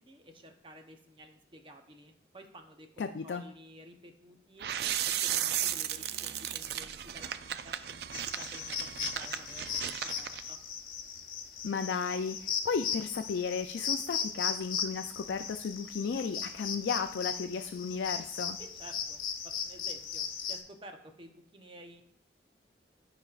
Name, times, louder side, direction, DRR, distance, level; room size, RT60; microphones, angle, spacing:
voice 1, 0.0-4.7 5.2-10.6 18.6-19.3 19.6-22.0, right 1 dB, 30° right, 5 dB, 0.8 m, -52 dB
voice 2, 3.0-3.4 11.6-18.6, left 5 dB, 85° left, 6 dB, 0.4 m, -34 dB
sound 1, 4.6-10.4, right 10 dB, 60° right, 0.4 m, -35 dB
sound 2, 8.1-20.6, left 7 dB, 50° left, 0.9 m, -37 dB
15.0 x 5.0 x 2.5 m, 0.70 s
head